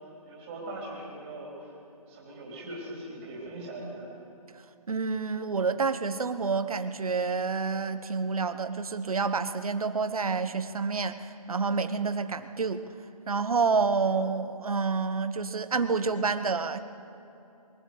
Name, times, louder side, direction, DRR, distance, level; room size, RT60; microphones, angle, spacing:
voice 1, 0.3-1.7 2.1-4.1, right 1 dB, 15° right, -4 dB, 4.1 m, -40 dB
voice 2, 4.9-12.8 13.3-16.8, right 4 dB, 65° right, 10 dB, 1.3 m, -28 dB
22.5 x 15.5 x 8.3 m, 2.9 s
hypercardioid pair, 170°, 20 cm